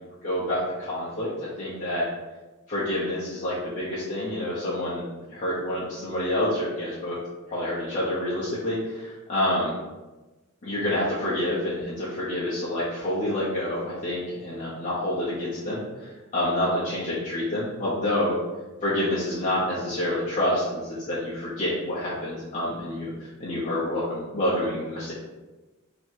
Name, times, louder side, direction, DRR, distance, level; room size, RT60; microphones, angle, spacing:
voice 1, 0.2-2.1 2.7-7.2 7.5-9.8 10.6-18.4 18.8-25.1, left 1 dB, 35° left, -10 dB, 0.9 m, -28 dB
3.0 x 2.8 x 4.5 m, 1.2 s
head